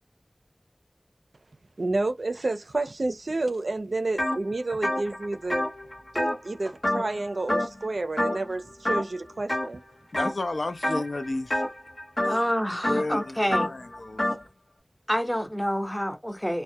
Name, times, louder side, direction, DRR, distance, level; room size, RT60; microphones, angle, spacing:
voice 1, 1.8-5.6 6.1-9.8, right 2 dB, 85° right, 0.4 m, -30 dB
sound 1, 4.2-4.4 4.7-7.2 7.5-7.9 8.2-8.5 8.8-9.7 10.1-10.5 10.8-14.4, left 1 dB, 60° left, 0.9 m, -28 dB
voice 2, 10.1-11.6 12.3-12.4 12.9-14.4, left 2 dB, 85° left, 0.4 m, -32 dB
voice 3, 12.2-13.7 15.1-16.6, equal, 5° left, 0.6 m, -27 dB
2.3 x 2.0 x 2.7 m
wide cardioid pair, 55°, 0 cm